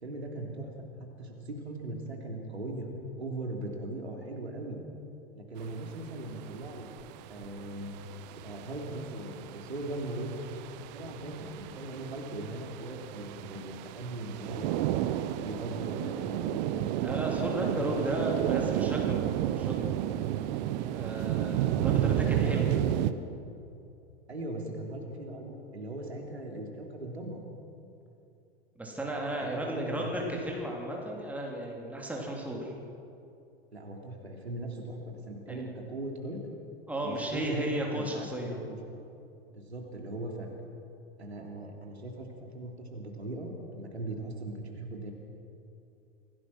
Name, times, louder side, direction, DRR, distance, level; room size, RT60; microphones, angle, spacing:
voice 1, 0.0-0.7 1.0-4.8 5.3-6.9 7.3-7.9 8.3-10.3 10.9-14.8 15.3-16.9 17.4-18.9 21.8-22.9 24.3-27.4 29.3-30.1 33.7-36.4 37.0-38.8 39.5-40.5 41.2-45.1, right 1 dB, 75° right, 1 dB, 3.1 m, -39 dB
sound 1, 5.6-23.1, right 13 dB, 40° right, 0.9 m, -32 dB
voice 2, 16.9-19.2 19.6-19.9 20.9-22.7 28.8-32.7 35.5-35.6 36.9-38.6, right 1 dB, 5° right, -1 dB, 3.3 m, -34 dB
26.0 x 17.5 x 6.1 m, 2.7 s
figure-of-eight pair, 90°, 33 cm